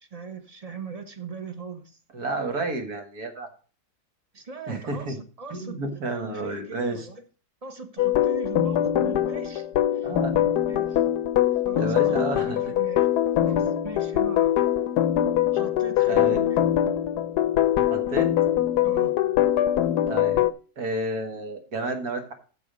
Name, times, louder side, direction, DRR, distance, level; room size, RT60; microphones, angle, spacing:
voice 1, 0.0-2.0 4.3-7.2 7.6-9.7 9.9-10.1 10.7-11.0 11.5-13.1 13.4-14.6 15.5-16.6 18.8-19.1, right 5 dB, 25° right, 1.0 m, -39 dB
voice 2, 2.1-3.5 4.7-5.2 5.5-7.1 10.0-10.4 11.8-12.6 13.5-13.7 16.1-16.4 17.9-18.3 20.1-20.4 20.8-22.3, right 2 dB, 65° right, 2.2 m, -31 dB
sound 1, 8.0-20.5, left 11 dB, 75° left, 1.2 m, -23 dB
14.0 x 4.7 x 5.1 m
omnidirectional pair, 1.7 m